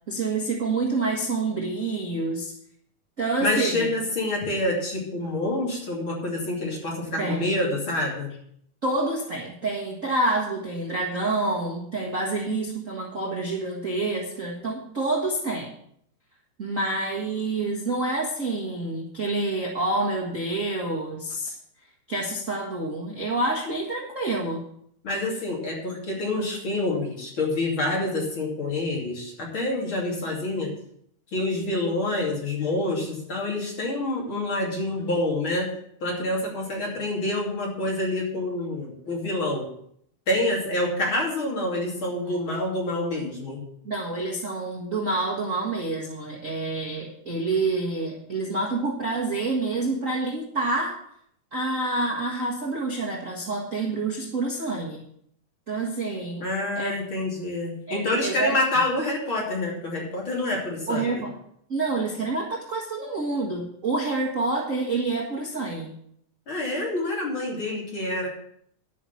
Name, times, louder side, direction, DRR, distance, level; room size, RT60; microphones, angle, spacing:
voice 1, 0.1-2.5 3.2-3.9 7.2-7.5 8.8-15.7 16.6-21.5 22.1-24.6 43.8-51.0 51.5-55.0 55.7-56.5 56.7-56.9 57.9-58.6 60.9-61.3 61.7-65.9, right 2 dB, 35° right, -3 dB, 1.4 m, -27 dB
voice 2, 3.4-8.3 25.0-30.7 31.3-35.7 36.0-39.7 40.3-43.6 56.4-61.2 66.5-68.3, left 2 dB, 40° left, -2 dB, 3.4 m, -27 dB
12.0 x 6.0 x 7.0 m, 0.68 s
omnidirectional pair, 3.6 m